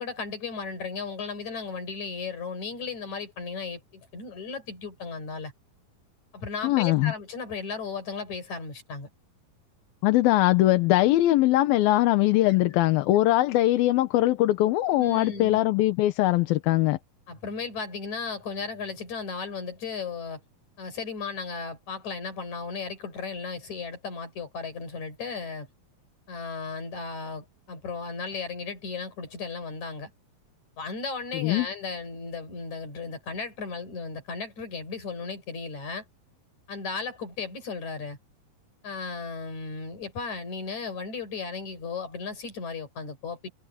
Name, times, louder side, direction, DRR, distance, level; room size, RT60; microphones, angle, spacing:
voice 1, 0.0-5.5 6.3-9.1 15.0-15.6 17.3-20.4 20.8-25.7 26.3-30.1 30.8-36.0 36.7-38.2 38.8-43.5, left 4 dB, 50° left, 6.5 m, -35 dB
voice 2, 6.6-7.1 10.0-17.0 31.3-31.7, left 16 dB, 85° left, 2.8 m, -21 dB
omnidirectional pair, 4.1 m